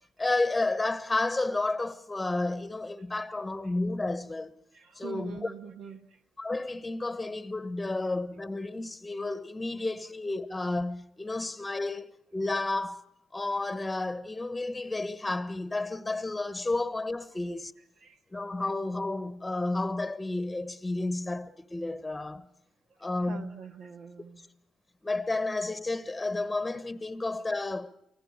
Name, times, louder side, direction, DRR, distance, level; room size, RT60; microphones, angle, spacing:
voice 1, 0.2-4.5 4.9-5.5 6.4-13.0 13.3-17.7 18.3-22.5 23.0-23.5 24.4-24.5 25.0-27.9, left 2 dB, 15° left, 1.1 m, -31 dB
voice 2, 4.7-6.2 18.0-18.2 23.3-24.4, right 6 dB, 75° right, 1.6 m, -44 dB
24.0 x 16.5 x 8.7 m
cardioid pair, 90°, 0 cm